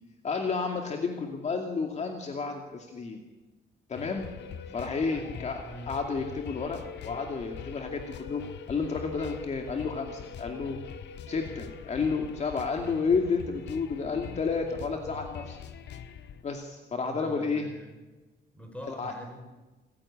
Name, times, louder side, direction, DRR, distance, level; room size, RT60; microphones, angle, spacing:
voice 1, 0.2-3.2 3.9-4.3 4.7-8.4 8.7-10.8 11.3-15.6 16.4-17.7 18.9-19.1, left 4 dB, 40° left, 3 dB, 2.4 m, -31 dB
sound 1, 3.9-16.4, left 7 dB, 85° left, 1.6 m, -43 dB
voice 2, 5.1-5.9 17.0-18.0 18.5-19.5, equal, 5° left, 4 dB, 5.4 m, -45 dB
28.0 x 15.5 x 8.8 m, 1.2 s
cardioid pair, 145°, 18 cm